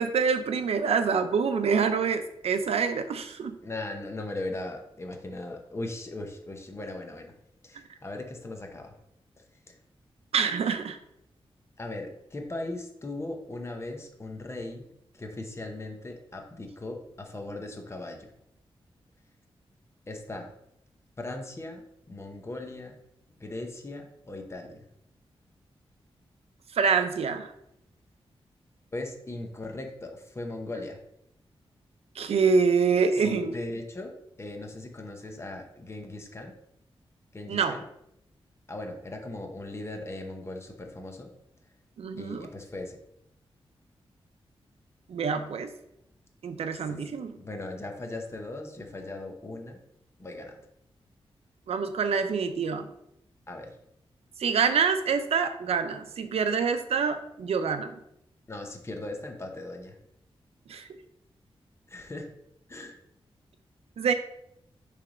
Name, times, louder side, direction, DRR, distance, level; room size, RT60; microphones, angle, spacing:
voice 1, 0.0-3.6 10.3-11.0 26.8-27.5 32.2-33.5 37.5-37.8 42.0-42.5 45.1-45.7 46.4-47.3 51.7-52.9 54.4-57.9 60.7-60.9 64.0-64.1, right 5 dB, 85° right, 9 dB, 0.6 m, -26 dB
voice 2, 3.6-7.3 7.6-8.9 9.7-9.8 11.8-14.9 15.1-18.3 20.1-20.5 21.2-23.0 23.4-24.8 28.9-31.0 33.2-34.1 34.4-36.6 37.3-37.8 38.7-41.3 42.2-43.0 46.9-49.8 50.2-50.6 53.5-53.7 58.5-60.0 61.9-62.3 62.7-63.0, left 2 dB, 25° left, 3 dB, 1.0 m, -38 dB
6.7 x 3.4 x 5.1 m, 0.79 s
wide cardioid pair, 140°, 10 cm